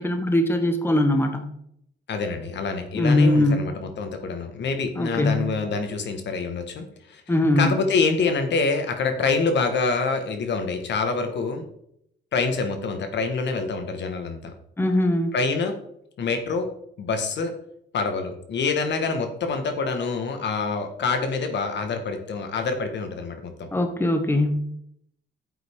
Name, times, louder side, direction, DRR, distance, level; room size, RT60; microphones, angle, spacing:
voice 1, 0.0-1.5 2.9-3.6 4.9-5.5 7.3-7.7 14.8-15.4 23.7-24.6, left 1 dB, 10° left, 6 dB, 1.1 m, -21 dB
voice 2, 2.1-7.2 7.6-11.6 12.3-14.4 15.3-15.7 16.2-16.7 17.0-17.5 17.9-23.7, left 4 dB, 65° left, 6 dB, 1.6 m, -26 dB
9.6 x 7.8 x 3.7 m, 0.74 s
cardioid pair, 90°, 20 cm